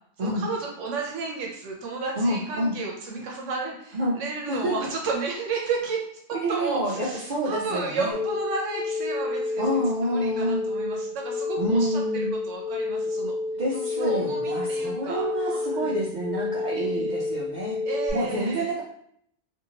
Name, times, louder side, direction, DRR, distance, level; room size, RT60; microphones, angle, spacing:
voice 1, 0.2-6.0 6.5-9.6 10.0-12.0 12.5-13.3 13.9-15.9 16.8-17.2 17.8-18.7, right 4 dB, 85° right, 0 dB, 0.9 m, -32 dB
voice 2, 2.2-2.7 3.9-4.2 4.5-4.8 6.3-8.2 9.6-10.7 11.6-12.3 13.6-17.8 18.1-18.8, right 1 dB, 60° right, -4 dB, 0.5 m, -28 dB
sound 1, 8.1-18.1, left 3 dB, 20° left, 0.7 m, -29 dB
2.7 x 2.6 x 2.7 m, 0.68 s
omnidirectional pair, 1.2 m